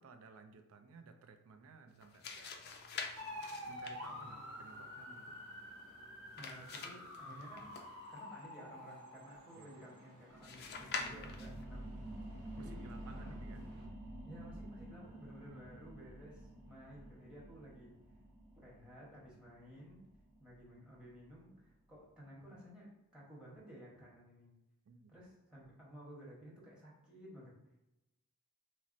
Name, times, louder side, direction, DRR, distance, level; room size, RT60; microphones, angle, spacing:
voice 1, 0.0-2.7 3.6-5.4 9.6-9.7 12.6-13.6 15.5-15.6 24.9-25.2, right 4 dB, 70° right, 7 dB, 0.4 m, -57 dB
sound 1, 1.9-8.2 10.4-11.7, left 5 dB, 45° left, 0.3 m, -47 dB
sound 2, 3.2-13.9, left 1 dB, 85° right, 0.8 m, -50 dB
voice 2, 6.4-7.8 8.1-12.0 12.6-13.4 14.2-17.9 18.6-20.0 20.4-24.5 25.1-27.5, equal, 5° right, -5 dB, 0.9 m, -55 dB
sound 3, 10.3-21.5 21.9-22.0, right 1 dB, 40° right, 0.9 m, -50 dB
3.9 x 2.1 x 2.5 m, 0.92 s
head